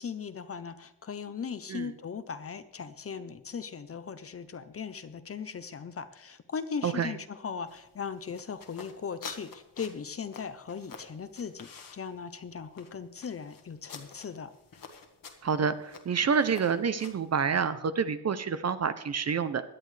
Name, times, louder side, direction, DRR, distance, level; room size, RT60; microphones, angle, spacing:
voice 1, 0.0-14.5, left 6 dB, 35° left, 12 dB, 0.6 m, -38 dB
voice 2, 6.8-7.1 15.4-19.6, right 6 dB, 40° right, 12 dB, 0.5 m, -28 dB
sound 1, 7.7-17.4, left 5 dB, 50° left, 1.4 m, -49 dB
17.5 x 11.0 x 3.2 m, 0.87 s
wide cardioid pair, 180°, 43 cm